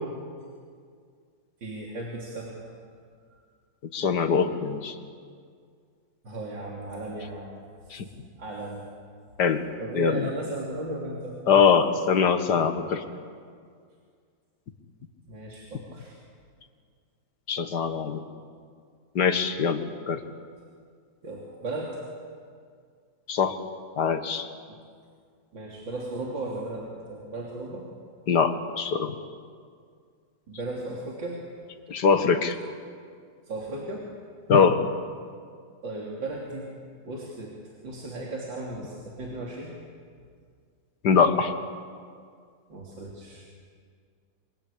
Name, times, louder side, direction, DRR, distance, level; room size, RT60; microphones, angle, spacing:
voice 1, 1.6-2.6 3.3-3.4 6.2-7.5 8.4-8.8 9.8-11.4 15.3-16.2 21.2-22.0 25.5-27.9 30.5-31.4 33.5-34.1 35.8-36.8 37.0-37.5 37.8-39.7 42.7-43.4, right 2 dB, 85° right, -3 dB, 4.0 m, -35 dB
voice 2, 3.9-5.0 7.9-8.1 9.4-9.6 10.0-10.3 11.5-13.0 17.5-18.2 19.2-20.2 23.3-23.6 24.0-24.5 28.3-29.1 31.9-32.6 34.5-34.8 41.0-41.5, left 6 dB, 65° left, 8 dB, 2.1 m, -22 dB
27.5 x 25.0 x 8.6 m, 2.1 s
omnidirectional pair, 1.9 m